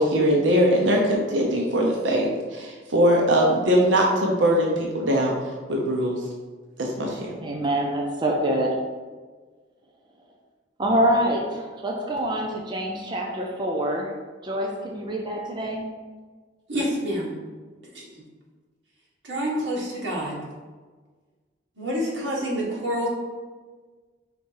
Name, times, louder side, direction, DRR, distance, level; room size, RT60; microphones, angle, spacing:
voice 1, 0.0-5.3 5.7-6.2 6.8-7.3, equal, 90° right, -1 dB, 0.9 m, -21 dB
voice 2, 7.4-8.8 10.8-14.1 14.4-15.8, right 1 dB, 25° right, -1 dB, 0.6 m, -25 dB
voice 3, 16.7-17.3 17.9-18.1 19.2-20.4 21.8-23.1, equal, 70° right, -4 dB, 1.8 m, -27 dB
5.1 x 4.1 x 4.7 m, 1.4 s
head